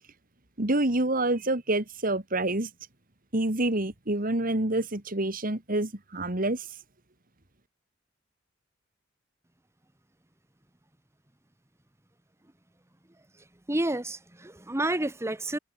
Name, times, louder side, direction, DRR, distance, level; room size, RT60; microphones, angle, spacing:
voice 1, 0.6-2.7 3.3-6.6, right 2 dB, 45° right, 2.5 m, -27 dB
voice 2, 13.7-15.6, right 1 dB, 15° right, 1.1 m, -29 dB
head